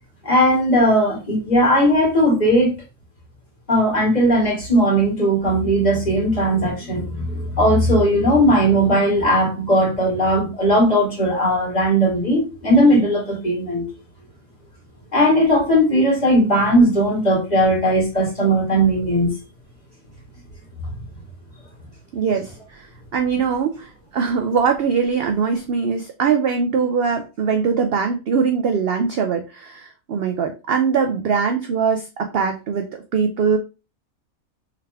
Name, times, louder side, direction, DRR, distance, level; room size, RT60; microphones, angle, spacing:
voice 1, 0.2-2.7 3.7-13.8 15.1-19.3, equal, 30° left, -3 dB, 2.1 m, -17 dB
voice 2, 22.1-22.9 23.1-33.6, right 6 dB, 65° right, 5 dB, 0.6 m, -22 dB
3.6 x 3.4 x 3.3 m, 0.31 s
omnidirectional pair, 1.5 m